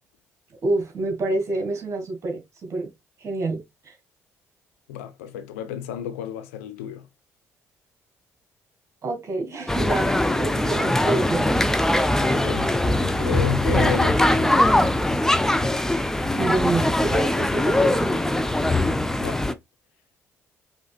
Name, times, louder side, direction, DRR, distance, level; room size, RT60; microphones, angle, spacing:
voice 1, 0.6-2.9 3.2-3.9 9.0-11.5 16.1-18.2, right 2 dB, 40° right, 2.2 m, -28 dB
voice 2, 4.9-7.1 12.2-14.9 19.2-19.4, left 8 dB, 70° left, 0.6 m, -32 dB
sound 1, 9.7-19.5, left 1 dB, 5° left, 0.6 m, -21 dB
5.1 x 3.8 x 2.4 m
figure-of-eight pair, 45°, 8 cm